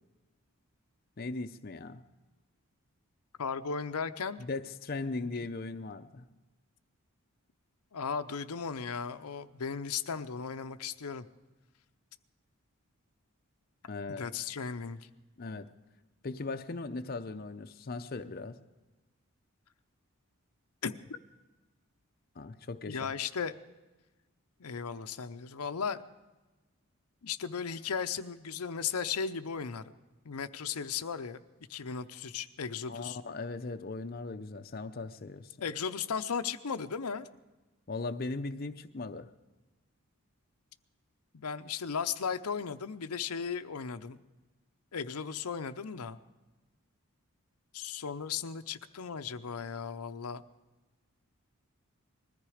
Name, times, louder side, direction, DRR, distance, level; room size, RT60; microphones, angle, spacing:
voice 1, 1.2-2.0 4.4-6.2 13.9-14.3 15.4-15.7 16.2-18.6 22.4-23.1 32.9-35.6 37.9-39.3, left 3 dB, 40° left, 8 dB, 0.6 m, -38 dB
voice 2, 3.4-4.5 5.2-5.5 7.9-11.2 14.2-15.0 20.8-20.9 22.9-23.5 24.6-26.0 27.2-29.9 30.2-31.4 31.7-33.2 35.6-37.3 41.3-44.2 44.9-46.2 47.7-50.4, left 6 dB, 90° left, 10 dB, 0.7 m, -36 dB
20.5 x 14.0 x 5.0 m, 1.2 s
head